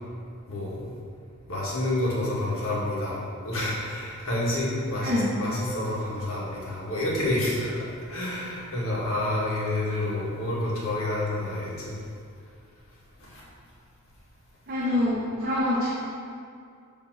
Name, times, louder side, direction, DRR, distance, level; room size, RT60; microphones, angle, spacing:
voice 1, 0.5-0.8 1.5-11.7 13.3-13.4, left 1 dB, 65° left, -6 dB, 1.9 m, -29 dB
voice 2, 14.7-15.9, left 1 dB, 40° right, -8 dB, 1.0 m, -25 dB
7.7 x 3.4 x 6.2 m, 2.3 s
head